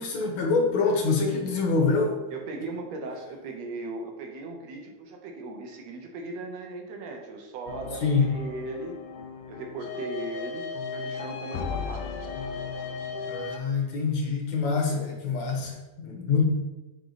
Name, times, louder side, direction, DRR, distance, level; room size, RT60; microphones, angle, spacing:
voice 1, 0.0-2.2 7.9-8.3 13.3-16.5, left 4 dB, 70° left, 0 dB, 2.2 m, -25 dB
voice 2, 2.3-9.0 9.5-12.2 14.8-15.1, right 2 dB, 70° right, 2 dB, 1.8 m, -38 dB
sound 1, 7.7-13.6, left 5 dB, 85° left, 2.1 m, -36 dB
8.1 x 3.7 x 4.0 m, 1.1 s
omnidirectional pair, 3.5 m